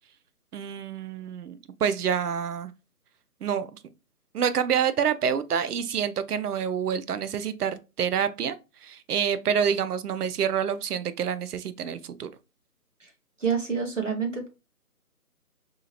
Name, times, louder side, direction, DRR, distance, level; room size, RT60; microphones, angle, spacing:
voice 1, 0.5-2.7 3.4-3.8 4.3-8.6 8.8-12.3, right 7 dB, 80° right, 0.5 m, -27 dB
voice 2, 13.4-14.5, right 6 dB, 55° right, 0.8 m, -28 dB
3.3 x 2.7 x 2.8 m
hypercardioid pair, 175°, 46 cm